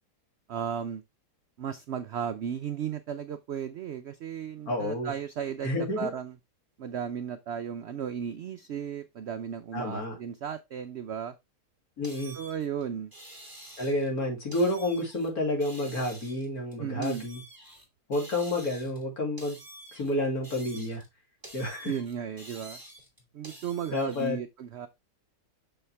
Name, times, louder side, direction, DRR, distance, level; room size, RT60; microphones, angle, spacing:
voice 1, 0.5-1.0 1.6-6.4 6.8-11.4 12.3-13.1 16.8-17.2 21.8-22.8 23.3-24.9, right 8 dB, 85° right, 0.5 m, -35 dB
voice 2, 4.7-5.1 5.6-6.1 9.7-10.1 12.0-12.4 13.8-17.4 18.1-19.6 19.9-21.0 21.5-21.9 23.9-24.4, left 1 dB, 60° left, 2.8 m, -30 dB
sound 1, 12.0-14.1 14.5-15.3 15.6-17.9 18.1-19.1 19.4-21.1 21.4-24.3, right 1 dB, 10° right, 2.2 m, -48 dB
6.4 x 5.6 x 3.3 m
omnidirectional pair, 1.8 m